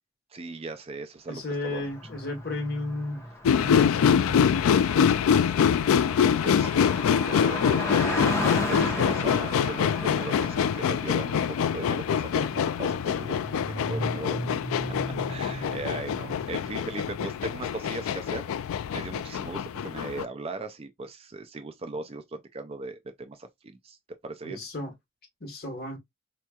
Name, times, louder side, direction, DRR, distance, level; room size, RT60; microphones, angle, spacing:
voice 1, 0.3-1.8 6.2-14.4 15.3-18.5 18.9-24.0 24.2-24.6, right 3 dB, 30° right, 0.4 m, -38 dB
voice 2, 1.3-3.3 3.5-5.3 24.4-24.9 25.4-26.0, left 2 dB, 50° left, 1.3 m, -35 dB
Car passing by, 1.5-17.6, left 1 dB, 15° left, 0.9 m, -36 dB
sound 1, 3.5-20.2, left 7 dB, 85° left, 0.3 m, -25 dB
4.3 x 2.9 x 2.3 m
head